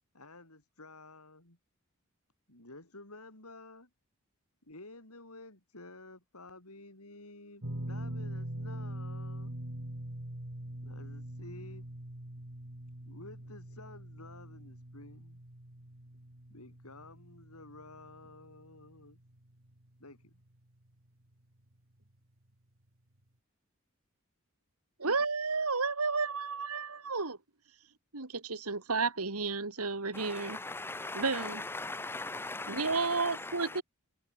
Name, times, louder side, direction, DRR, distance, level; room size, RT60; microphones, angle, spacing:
voice 1, 0.1-1.6 2.5-3.9 4.6-9.6 10.8-11.8 13.1-15.4 16.5-19.2 20.0-20.3, left 2 dB, 85° left, 7.1 m, -52 dB
sound 1, 7.6-19.9 20.1-20.4 22.0-22.1, right 1 dB, 65° right, 2.8 m, -43 dB
voice 2, 25.0-27.4 28.1-30.6 31.1-31.6 32.7-33.8, right 4 dB, 85° right, 2.4 m, -32 dB
voice 3, 30.1-33.7, left 2 dB, 10° left, 0.6 m, -39 dB
head